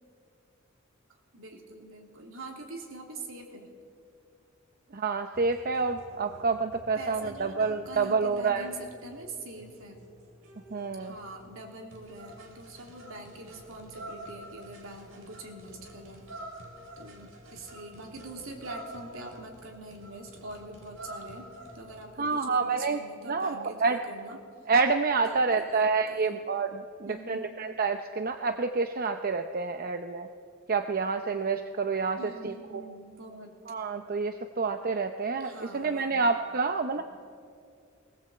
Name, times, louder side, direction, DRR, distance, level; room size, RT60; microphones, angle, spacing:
voice 1, 1.3-3.7 6.9-10.1 11.0-16.2 17.0-24.4 25.3-26.4 27.0-27.5 32.2-33.5 35.4-36.4 37.0-37.1, right 2 dB, 70° right, 2 dB, 3.1 m, -44 dB
voice 2, 4.9-8.7 10.7-11.2 22.2-23.0 23.3-24.0 24.7-30.3 30.7-32.9 33.7-37.0, right 4 dB, 45° right, 7 dB, 0.7 m, -28 dB
sound 1, 5.3-22.3, right 1 dB, 90° right, 3.8 m, -48 dB
19.5 x 18.5 x 7.8 m, 2.4 s
head